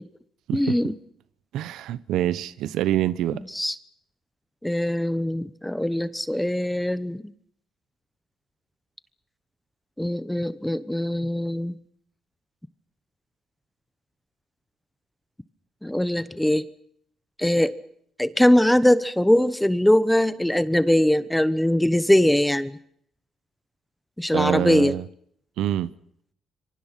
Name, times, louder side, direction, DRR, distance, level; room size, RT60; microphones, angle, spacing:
voice 1, 0.5-0.9 3.5-3.7 4.6-7.3 10.0-11.8 15.8-16.7 17.4-17.7 18.2-22.8 24.2-25.0, left 1 dB, 5° left, 1.0 m, -21 dB
voice 2, 1.5-3.4 24.3-25.1 25.6-25.9, right 12 dB, 85° right, 0.9 m, -25 dB
26.5 x 23.5 x 5.8 m
cardioid pair, 90°, 0 cm